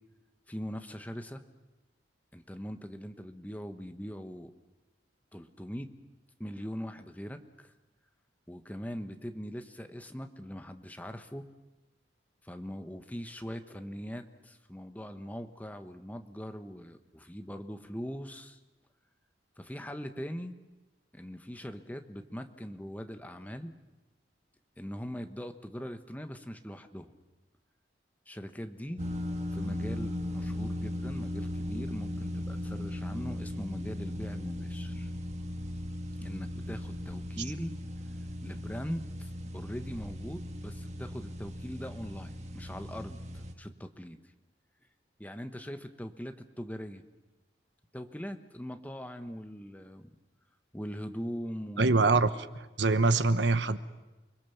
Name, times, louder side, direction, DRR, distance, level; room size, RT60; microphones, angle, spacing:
voice 1, 0.5-1.4 2.3-4.5 5.3-5.9 6.4-7.7 8.5-11.4 12.4-18.6 19.6-20.6 21.1-23.7 24.8-27.1 28.3-29.0 29.5-35.1 36.2-37.7 38.4-44.3 45.2-47.0 47.9-50.0 50.7-52.0, equal, 10° left, 7 dB, 1.2 m, -41 dB
sound 1, 29.0-43.5, left 1 dB, 40° right, 1.5 m, -37 dB
voice 2, 51.8-53.8, right 3 dB, 85° right, 12 dB, 1.1 m, -25 dB
29.0 x 21.5 x 7.1 m, 1.1 s
head